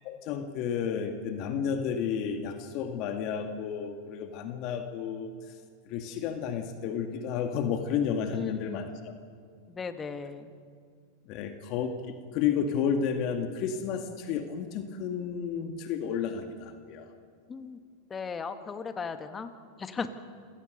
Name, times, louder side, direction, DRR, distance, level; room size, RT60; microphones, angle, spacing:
voice 1, 0.0-5.5 5.9-9.1 11.3-17.1, left 7 dB, 50° left, 6 dB, 2.1 m, -32 dB
voice 2, 8.3-8.9 9.7-10.5 17.5-17.8 18.1-20.1, left 5 dB, 20° left, 9 dB, 1.7 m, -37 dB
27.5 x 17.0 x 6.7 m, 2.1 s
hypercardioid pair, 115°, 0 cm